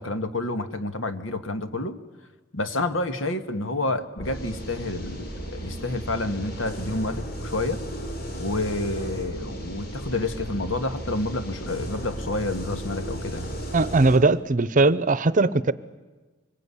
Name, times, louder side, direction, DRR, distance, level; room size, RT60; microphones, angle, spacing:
voice 1, 0.0-2.0 2.5-7.8 8.4-13.6, left 2 dB, 80° left, 9 dB, 1.8 m, -29 dB
sound 1, 4.2-14.2, right 1 dB, 50° left, 4.0 m, -35 dB
voice 2, 13.7-15.7, right 3 dB, 40° right, 17 dB, 0.8 m, -19 dB
25.0 x 21.5 x 9.9 m, 1.3 s
head